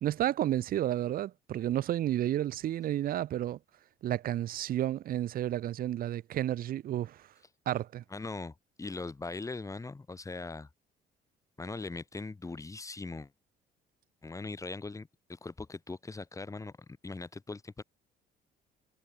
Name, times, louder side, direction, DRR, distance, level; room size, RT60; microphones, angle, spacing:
voice 1, 0.0-3.6 4.0-7.3 7.7-8.0, right 12 dB, 60° right, 1.1 m, -31 dB
voice 2, 8.1-10.7 11.6-13.3 14.2-17.8, left 3 dB, 20° left, 4.6 m, -40 dB
cardioid pair, 110°, 17 cm